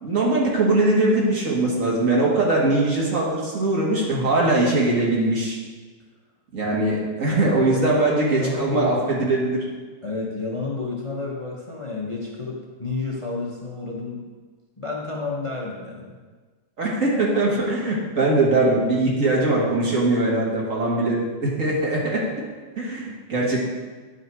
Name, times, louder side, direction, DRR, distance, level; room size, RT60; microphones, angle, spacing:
voice 1, 0.0-5.6 6.5-9.6 16.8-22.2 22.8-23.6, right 2 dB, 45° right, -3 dB, 1.9 m, -21 dB
voice 2, 7.3-8.0 8.3-8.9 10.0-14.2 14.8-16.2, left 3 dB, 35° left, -2 dB, 0.5 m, -30 dB
9.9 x 5.6 x 4.6 m, 1.4 s
omnidirectional pair, 2.1 m